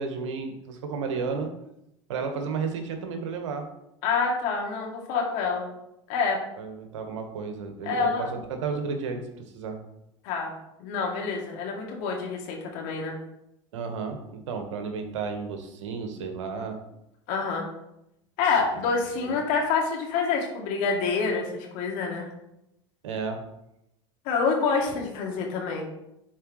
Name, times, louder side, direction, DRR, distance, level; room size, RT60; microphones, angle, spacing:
voice 1, 0.0-1.5 2.1-3.7 6.6-9.8 13.7-16.8 18.6-18.7 19.2-19.3 23.0-23.4, right 5 dB, 75° right, 5 dB, 1.4 m, -32 dB
voice 2, 4.0-5.7 6.1-6.4 7.9-8.3 10.2-10.5 10.8-13.2 17.3-17.7 18.4-22.3 24.2-25.8, left 5 dB, 60° left, 0 dB, 2.4 m, -27 dB
11.5 x 4.6 x 3.2 m, 0.84 s
hypercardioid pair, 90°, 16 cm